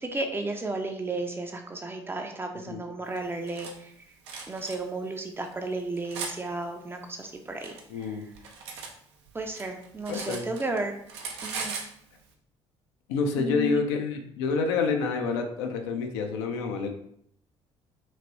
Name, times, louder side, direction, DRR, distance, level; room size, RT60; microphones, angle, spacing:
voice 1, 0.0-3.9 4.5-8.2 9.3-11.0 11.4-11.8 13.4-13.8, right 2 dB, 15° right, 4 dB, 0.5 m, -33 dB
Cutlery silverware, 3.1-3.7 4.2-4.8 5.5-6.3 7.2-8.9 9.2-10.8 11.1-11.9, right 5 dB, 70° right, 0.5 m, -38 dB
voice 2, 7.9-8.3 10.1-10.4 13.1-16.9, left 4 dB, 65° left, 4 dB, 0.4 m, -28 dB
3.0 x 2.8 x 2.7 m, 0.67 s
figure-of-eight pair, 50°, 15 cm